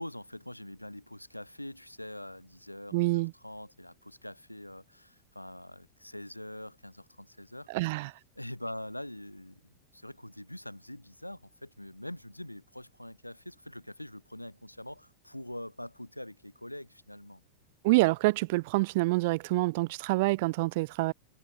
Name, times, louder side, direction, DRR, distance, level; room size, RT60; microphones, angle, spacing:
voice 1, 0.0-7.7 8.4-9.6 9.9-17.4, left 1 dB, 90° left, 2.1 m, -44 dB
voice 2, 2.9-3.3 7.7-8.1 17.8-21.1, right 23 dB, 50° right, 1.1 m, -26 dB
figure-of-eight pair, 90°, 0 cm